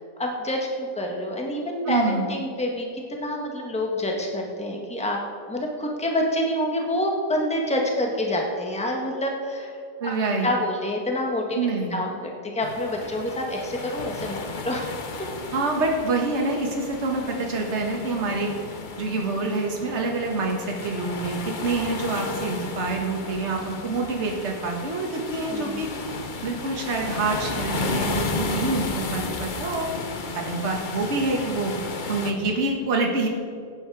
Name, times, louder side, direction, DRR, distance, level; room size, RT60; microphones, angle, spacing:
voice 1, 0.2-5.2 5.5-9.7 10.0-10.1 10.4-14.9 25.5-25.8, left 1 dB, 5° left, 1 dB, 1.3 m, -27 dB
voice 2, 1.9-2.3 10.0-10.5 11.5-12.0 15.5-25.9 26.4-29.9 30.4-31.7 32.1-33.3, right 3 dB, 45° right, 1 dB, 1.8 m, -26 dB
sound 1, 12.6-32.3, left 4 dB, 40° left, 0.8 m, -33 dB
15.5 x 9.7 x 4.8 m, 2.4 s
omnidirectional pair, 1.8 m